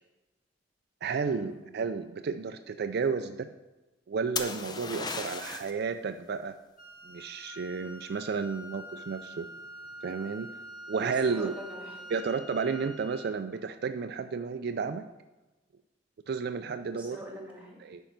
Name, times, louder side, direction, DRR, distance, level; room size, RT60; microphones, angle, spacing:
voice 1, 1.0-3.5 4.1-6.6 7.0-9.5 10.0-10.5 10.9-11.5 12.1-15.1 16.3-17.2 17.8-18.0, right 5 dB, 60° right, 9 dB, 0.4 m, -32 dB
sound 1, 4.4-5.8 9.5-9.9, left 4 dB, 25° left, 0.6 m, -35 dB
Wind instrument woodwind instrument, 6.8-13.4, equal, 50° left, 1.7 m, -46 dB
voice 2, 11.1-12.1 16.9-17.8, equal, 5° right, -1 dB, 2.2 m, -44 dB
10.0 x 4.5 x 6.5 m, 1.1 s
head